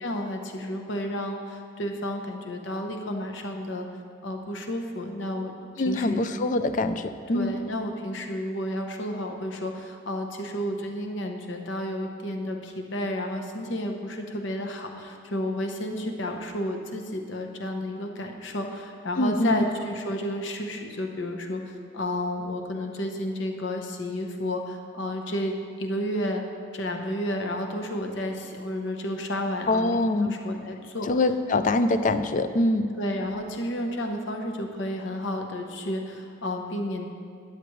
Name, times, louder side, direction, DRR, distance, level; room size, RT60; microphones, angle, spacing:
voice 1, 0.0-3.9 4.2-5.5 5.8-6.2 7.3-26.4 26.7-31.1 32.9-37.1, left 1 dB, 60° left, 3 dB, 0.8 m, -31 dB
voice 2, 5.8-7.6 19.2-19.7 29.7-30.4 31.1-32.9, left 2 dB, 40° left, 10 dB, 0.4 m, -24 dB
12.5 x 9.8 x 3.1 m, 2.2 s
head